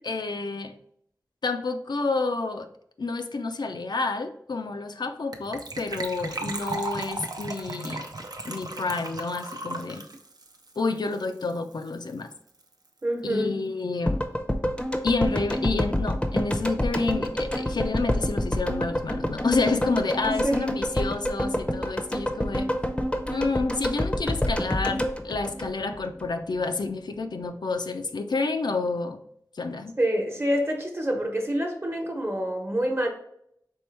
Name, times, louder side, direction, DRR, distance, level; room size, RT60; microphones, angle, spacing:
voice 1, 0.1-0.7 1.4-2.7 3.0-8.1 8.5-10.1 10.8-12.3 13.2-14.2 15.0-22.7 23.3-29.2 29.5-30.0, left 3 dB, 85° left, 0.4 m, -29 dB
Gurgling / Trickle dribble / Fill (with liquid), 5.3-11.6 11.8-11.9 12.1-12.3 12.6-12.7, right 2 dB, 65° right, 0.6 m, -36 dB
voice 2, 13.0-13.5 20.2-20.6 30.0-33.1, equal, 35° right, 1.0 m, -27 dB
sound 1, 14.1-26.3 26.5-26.6, equal, 15° left, 0.6 m, -28 dB
4.5 x 3.4 x 3.2 m
wide cardioid pair, 60°, 7 cm